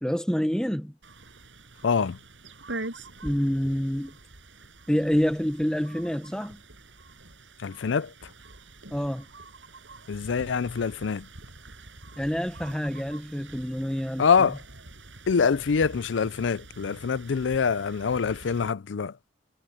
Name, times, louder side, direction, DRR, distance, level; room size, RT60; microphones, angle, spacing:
voice 1, 0.0-0.9 3.2-4.2 4.9-6.6 8.9-9.3 12.2-14.5, equal, 5° left, 0.8 m, -27 dB
sound 1, 1.0-18.7, right 2 dB, 85° right, 6.2 m, -45 dB
voice 2, 1.8-2.2 7.6-8.1 10.1-11.3 14.2-14.6 15.3-19.1, left 6 dB, 80° left, 0.5 m, -25 dB
head